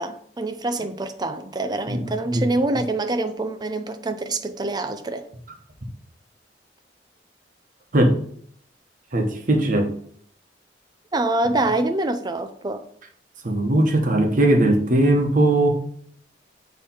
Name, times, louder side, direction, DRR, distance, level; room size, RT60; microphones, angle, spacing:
voice 1, 0.0-5.2 11.1-12.8, right 2 dB, 25° right, 0.5 m, -25 dB
voice 2, 9.1-9.9 13.4-15.7, right 1 dB, 50° right, 1.1 m, -19 dB
7.4 x 3.2 x 4.3 m
head